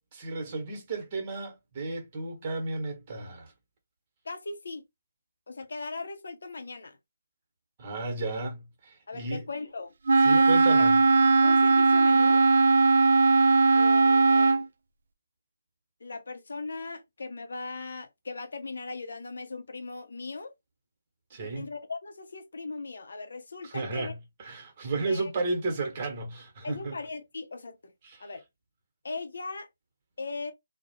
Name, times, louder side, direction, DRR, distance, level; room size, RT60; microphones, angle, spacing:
voice 1, 0.1-3.5 7.8-9.4 10.2-11.0 21.3-21.6 23.6-24.1 24.4-26.9 28.0-28.3, right 3 dB, 35° right, 1.0 m, -33 dB
voice 2, 4.2-4.8 5.5-7.0 9.1-9.9 10.3-10.9 11.4-12.4 13.7-14.7 16.0-20.5 21.4-24.1 25.0-25.3 26.6-27.9 28.2-28.4 29.0-29.7 30.2-30.5, left 3 dB, 65° left, 0.6 m, -38 dB
Wind instrument woodwind instrument, 10.1-14.6, right 3 dB, 60° right, 0.3 m, -19 dB
2.4 x 2.0 x 2.8 m
figure-of-eight pair, 145°, 0 cm